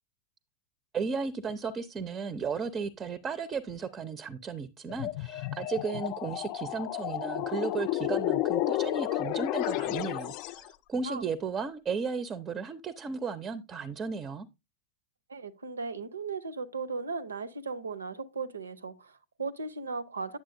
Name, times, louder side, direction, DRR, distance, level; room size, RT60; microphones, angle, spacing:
voice 1, 0.9-14.5, right 5 dB, 25° right, 0.5 m, -35 dB
sound 1, 4.9-10.7, left 15 dB, 45° left, 0.4 m, -31 dB
voice 2, 15.3-20.4, right 4 dB, 75° right, 0.6 m, -37 dB
9.4 x 7.4 x 2.6 m
figure-of-eight pair, 90°, 0 cm